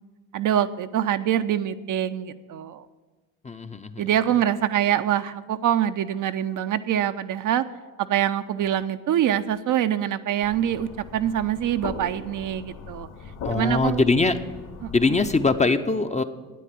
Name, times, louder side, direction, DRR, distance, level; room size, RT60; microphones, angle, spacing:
voice 1, 0.3-2.8 4.0-7.6 8.0-13.1 13.5-14.0 14.8-14.9, right 10 dB, 45° right, 10 dB, 0.6 m, -24 dB
voice 2, 3.4-4.0 13.4-14.4 14.9-16.2, left 3 dB, 15° left, 9 dB, 0.6 m, -22 dB
sound 1, 10.4-15.5, left 4 dB, 60° left, 2.1 m, -39 dB
9.3 x 9.1 x 8.3 m, 1.3 s
hypercardioid pair, 55°, 45 cm